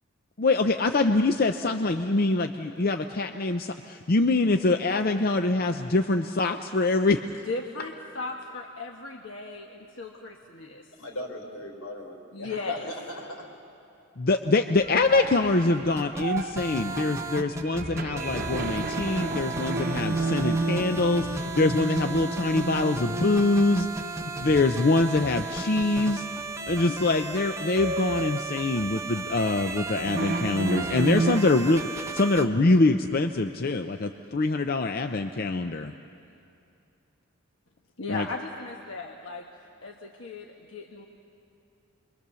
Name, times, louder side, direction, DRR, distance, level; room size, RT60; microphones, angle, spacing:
voice 1, 0.4-7.2 14.2-26.3 26.7-35.9 38.1-38.3, left 2 dB, 45° left, 6 dB, 0.6 m, -24 dB
voice 2, 7.5-10.9 12.3-12.9 38.0-39.5 39.8-41.1, left 3 dB, 60° left, 0 dB, 1.3 m, -36 dB
voice 3, 11.0-13.5, equal, 85° left, 2 dB, 4.4 m, -38 dB
sound 1, 14.8-25.5 25.9-26.1 26.7-27.1 27.3-31.4, right 3 dB, 40° right, 0.9 m, -32 dB
sound 2, 16.0-32.5, right 2 dB, 15° right, 0.7 m, -35 dB
28.5 x 23.0 x 6.9 m, 2.7 s
head